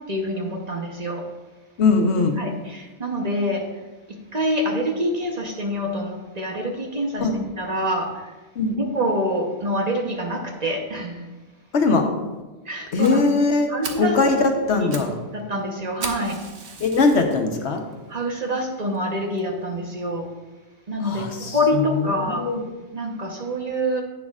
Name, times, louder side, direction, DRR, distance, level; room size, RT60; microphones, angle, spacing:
voice 1, 0.1-1.2 2.4-3.6 4.3-8.1 8.7-11.3 12.7-13.2 13.7-14.1 14.8-15.1 15.3-16.4 18.1-20.3 20.9-21.3 21.5-22.4 22.9-24.0, equal, 40° right, 1 dB, 1.0 m, -26 dB
voice 2, 1.8-2.4 7.2-7.3 8.6-8.7 11.7-12.1 12.9-14.4 14.7-15.1 16.8-17.8 21.0-22.6, left 3 dB, 75° left, 4 dB, 1.2 m, -21 dB
Fire, 13.0-13.1 13.5-13.6 13.8-14.1 14.6-15.1 15.4-15.5 16.0-17.3 17.9-18.0 18.6-18.7 18.9-19.0 19.4-19.5, right 4 dB, 75° right, 1.2 m, -35 dB
10.5 x 8.7 x 2.4 m, 1.2 s
omnidirectional pair, 1.2 m